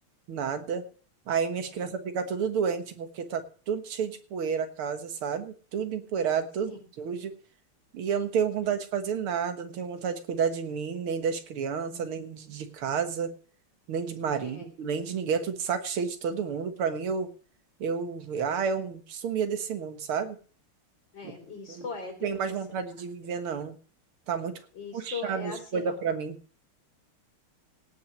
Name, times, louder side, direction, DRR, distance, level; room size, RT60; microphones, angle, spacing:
voice 1, 0.3-0.9 1.3-7.3 7.9-13.3 13.9-17.3 17.8-20.4 21.2-21.3 21.7-21.8 22.2-23.8 24.3-24.6 24.9-26.4, right 6 dB, 85° right, 9 dB, 2.3 m, -30 dB
voice 2, 21.1-22.2 24.7-25.8, left 4 dB, 60° left, 4 dB, 4.1 m, -39 dB
17.5 x 6.0 x 7.2 m, 0.41 s
omnidirectional pair, 2.3 m